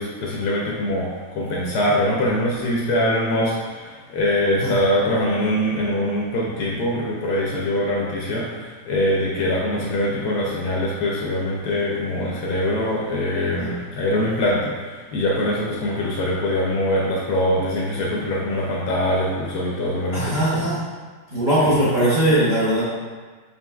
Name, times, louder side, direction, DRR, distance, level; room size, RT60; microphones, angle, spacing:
voice 1, 0.0-20.7, left 1 dB, 70° left, -3 dB, 1.1 m, -23 dB
voice 2, 20.1-20.8 21.3-22.8, right 1 dB, 35° right, -11 dB, 0.8 m, -20 dB
5.4 x 3.0 x 2.2 m, 1.5 s
omnidirectional pair, 1.9 m